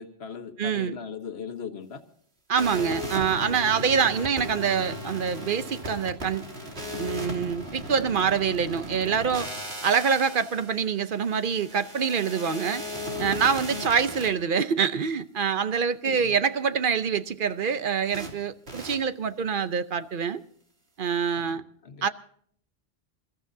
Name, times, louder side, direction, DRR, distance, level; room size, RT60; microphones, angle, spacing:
voice 1, 0.0-2.0 13.7-14.1 16.0-16.3 21.3-22.0, left 6 dB, 85° left, 1.5 m, -39 dB
voice 2, 0.6-1.0 2.5-6.4 7.0-9.5 9.8-12.8 13.2-20.4 21.0-21.6 22.0-22.1, right 6 dB, 60° right, 0.9 m, -25 dB
sound 1, 2.5-14.3 18.1-18.3 18.7-18.9, equal, 85° right, 3.0 m, -36 dB
27.5 x 14.0 x 2.7 m
omnidirectional pair, 1.1 m